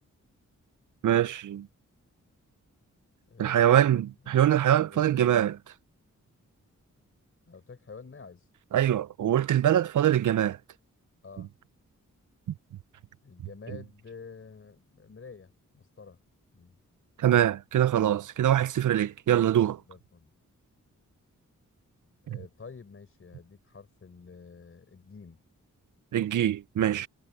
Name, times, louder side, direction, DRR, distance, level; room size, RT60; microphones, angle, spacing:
voice 1, 1.0-1.7 3.4-5.6 8.7-10.6 17.2-19.8 22.3-22.4 26.1-27.1, right 11 dB, 80° right, 0.5 m, -23 dB
voice 2, 3.3-4.1 4.9-5.5 7.5-8.4 11.2-11.5 13.2-16.2 16.5-16.8 19.9-20.3 22.2-25.4, left 5 dB, 45° left, 4.2 m, -48 dB
wide cardioid pair, 160°, 30 cm